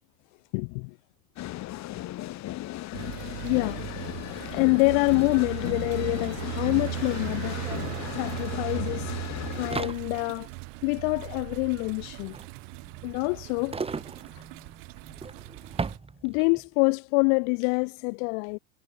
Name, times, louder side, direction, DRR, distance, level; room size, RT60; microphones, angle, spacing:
voice 1, 0.5-1.0 3.4-3.8 4.4-7.6 8.2-9.1 9.6-10.5 10.8-12.4 13.0-13.8 14.3-14.4 16.2-18.6, left 40 dB or more, 60° left, 2.3 m, -26 dB
sound 1, 1.4-9.7, left 15 dB, 40° left, 2.6 m, -36 dB
sound 2, 2.9-16.0, right 33 dB, 60° right, 1.3 m, -38 dB
sound 3, 5.9-6.0 6.2-16.7, right 4 dB, 15° right, 4.1 m, -40 dB
supercardioid pair, 145°, 43 cm